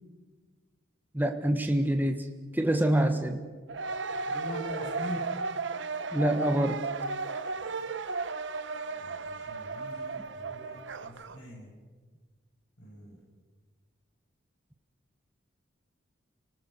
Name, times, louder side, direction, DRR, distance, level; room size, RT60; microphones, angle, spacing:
voice 1, 1.1-2.3 2.5-3.4 6.1-6.8, right 1 dB, 10° right, 5 dB, 1.2 m, -26 dB
sound 1, 3.7-11.4, right 4 dB, 65° right, 0.8 m, -35 dB
voice 2, 4.2-5.3 8.9-11.7 12.8-13.2, equal, 55° left, -5 dB, 6.6 m, -42 dB
29.5 x 19.0 x 6.6 m, 1.4 s
head